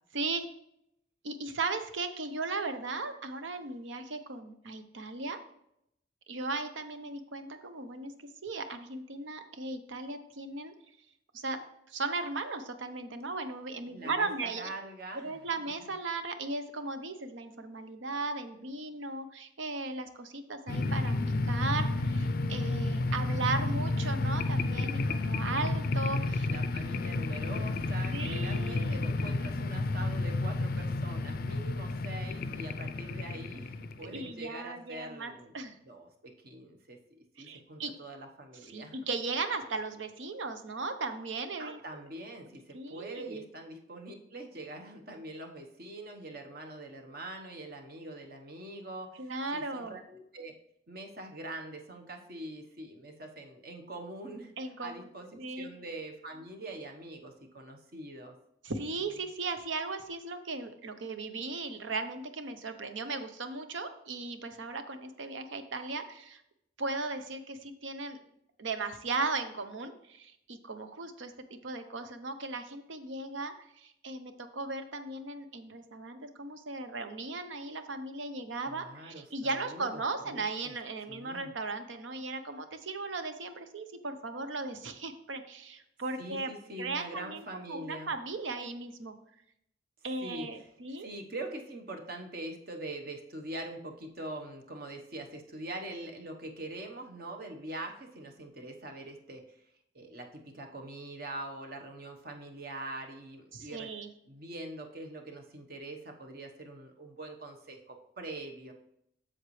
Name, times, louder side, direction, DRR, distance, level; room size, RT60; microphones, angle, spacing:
voice 1, 0.1-0.5 1.2-5.4 6.3-8.1 8.4-10.7 11.3-14.7 15.1-21.1 21.4-26.5 28.1-29.1 34.0-35.7 37.4-37.9 38.6-41.8 42.7-43.4 49.2-50.0 54.6-55.1 55.4-55.7 58.6-66.4 66.8-68.2 68.6-71.3 71.6-86.5 86.8-89.1 90.0-91.1 103.5-104.1, right 3 dB, 80° right, 9 dB, 0.8 m, -37 dB
voice 2, 13.9-15.9 26.4-35.5 35.8-37.0 37.4-39.0 41.6-50.5 50.9-55.3 55.6-58.4 59.0-59.1 78.7-80.7 81.1-81.5 86.2-88.1 90.2-90.7 91.0-99.6 99.9-103.9 104.3-108.7, right 1 dB, 50° right, 3 dB, 1.1 m, -43 dB
sound 1, 20.7-34.3, left 2 dB, 50° left, 0.4 m, -31 dB
7.9 x 7.3 x 3.2 m, 0.76 s
head